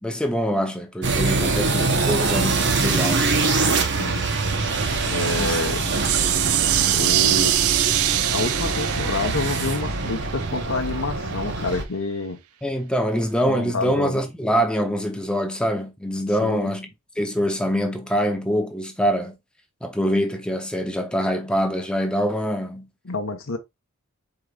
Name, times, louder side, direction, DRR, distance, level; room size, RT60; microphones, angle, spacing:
voice 1, 0.0-3.3 5.4-5.6 12.6-16.9 17.2-19.4 19.8-22.9, equal, 5° left, 0.7 m, -24 dB
sound 1, 1.0-11.8, right 3 dB, 55° right, 0.9 m, -24 dB
water poured into metal bowl effected, 4.7-10.6, right 14 dB, 80° right, 0.4 m, -24 dB
voice 2, 5.0-5.9 6.9-7.5 8.3-12.4 13.4-14.2 16.4-16.7 23.0-23.6, left 3 dB, 65° left, 0.9 m, -28 dB
4.9 x 4.6 x 2.4 m
head